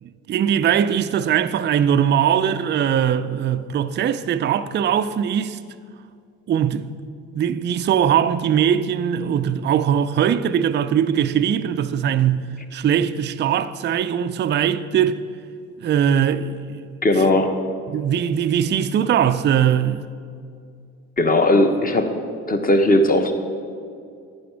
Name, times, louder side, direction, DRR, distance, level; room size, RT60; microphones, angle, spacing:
voice 1, 0.0-5.6 6.5-7.0 7.4-15.2 15.8-16.8 17.9-20.1, right 9 dB, 30° right, 0.4 m, -21 dB
voice 2, 17.0-17.5 21.2-22.1 22.5-23.3, left 1 dB, 25° left, 1.1 m, -17 dB
11.0 x 9.6 x 3.4 m
hypercardioid pair, 60°, 37 cm